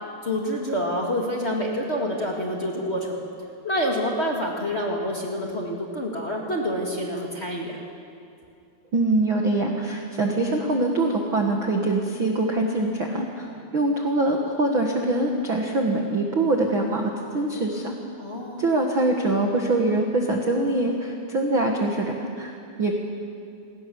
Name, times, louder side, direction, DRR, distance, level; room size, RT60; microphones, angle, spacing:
voice 1, 0.2-3.2 3.6-7.8 13.4-13.6 18.2-18.6, equal, 30° left, -2 dB, 1.2 m, -27 dB
voice 2, 8.9-17.9 18.6-22.9, right 2 dB, 80° right, 1 dB, 1.1 m, -24 dB
28.0 x 19.0 x 7.1 m, 2.5 s
omnidirectional pair, 5.1 m